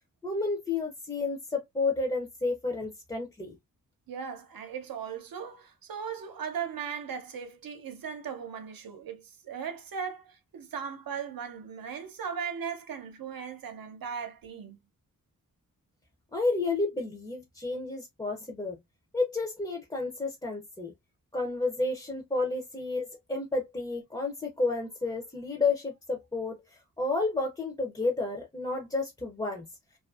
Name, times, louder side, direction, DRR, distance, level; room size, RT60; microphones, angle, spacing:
voice 1, 0.2-3.6 16.3-18.8 19.1-20.9 21.3-29.7, left 3 dB, 15° left, 0.4 m, -31 dB
voice 2, 4.1-14.8, right 7 dB, 90° right, 0.7 m, -38 dB
2.5 x 2.4 x 2.3 m
wide cardioid pair, 170°, 34 cm